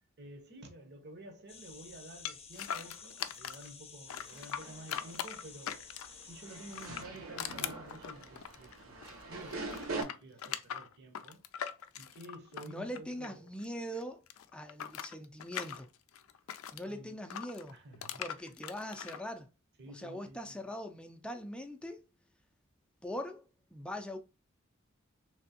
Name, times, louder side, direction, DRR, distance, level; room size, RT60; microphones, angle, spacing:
voice 1, 0.2-5.9 6.2-11.4 12.0-13.5 16.8-17.2 17.7-18.5 19.8-20.6, right 1 dB, 55° right, 0.9 m, -51 dB
sound 1, 1.5-7.0, left 6 dB, 30° left, 0.8 m, -52 dB
sound 2, 2.3-3.7 4.1-6.2 6.7-9.2 9.5-13.7 13.9-16.8 17.3-19.2, left 9 dB, 80° left, 0.4 m, -41 dB
sound 3, 4.2-10.0, right 3 dB, 90° right, 1.0 m, -44 dB
voice 2, 12.6-14.2 14.5-15.9 16.7-17.7 18.2-19.5 19.9-22.0 23.0-23.4 23.7-24.2, equal, 5° left, 0.5 m, -41 dB
3.4 x 2.9 x 2.8 m
head